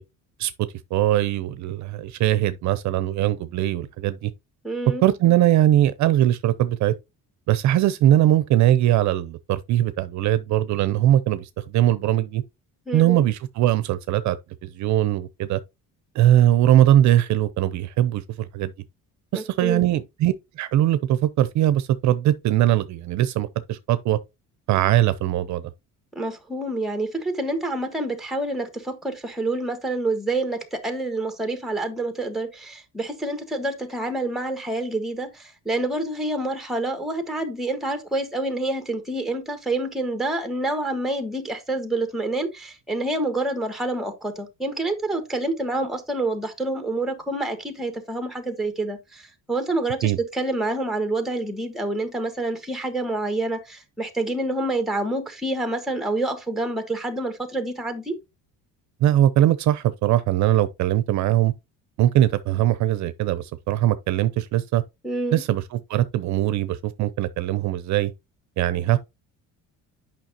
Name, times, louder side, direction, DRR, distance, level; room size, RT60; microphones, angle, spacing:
voice 1, 0.4-4.3 5.0-6.9 7.5-12.4 12.9-14.4 14.6-15.6 16.1-18.7 19.3-24.2 24.7-25.7 50.0-50.2 59.0-61.5 62.0-64.8 65.3-68.1 68.6-69.0, right 13 dB, 55° right, 0.6 m, -21 dB
voice 2, 4.6-5.0 12.9-13.2 19.3-19.9 26.1-58.1 65.0-65.4, right 2 dB, ahead, 1.4 m, -27 dB
9.0 x 5.7 x 2.8 m
cardioid pair, 150°, 34 cm